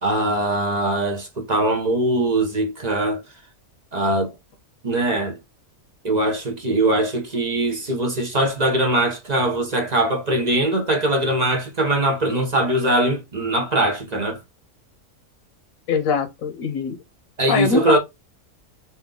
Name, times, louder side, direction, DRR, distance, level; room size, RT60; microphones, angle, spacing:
voice 1, 0.0-3.2 3.9-4.3 4.8-5.4 6.0-14.4 17.4-18.0, right 1 dB, 35° right, 0.9 m, -21 dB
voice 2, 15.9-17.0 17.5-18.0, left 6 dB, 85° left, 1.3 m, -22 dB
4.2 x 2.3 x 3.7 m
omnidirectional pair, 1.4 m